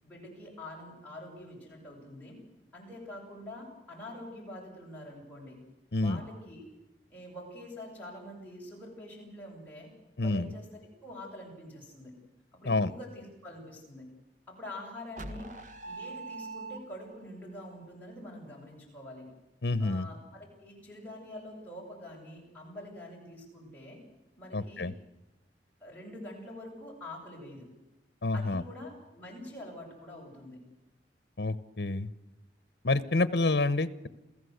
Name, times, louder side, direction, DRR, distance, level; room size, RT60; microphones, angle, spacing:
voice 1, 0.0-2.4 2.7-5.6 5.9-6.7 7.1-9.9 10.2-10.6 11.0-12.1 12.6-14.1 14.5-15.5 15.8-19.2 19.8-24.0 24.4-24.9 25.8-27.7 28.3-30.6, left 1 dB, 10° left, -3 dB, 7.9 m, -45 dB
voice 2, 10.2-10.5 12.7-12.9 19.6-20.1 24.5-24.9 28.2-28.6 31.4-32.1 32.8-34.1, left 2 dB, 75° left, 16 dB, 1.0 m, -28 dB
sound 1, 15.2-17.3, right 3 dB, 45° right, 1.6 m, -42 dB
27.5 x 16.0 x 8.1 m, 1.0 s
head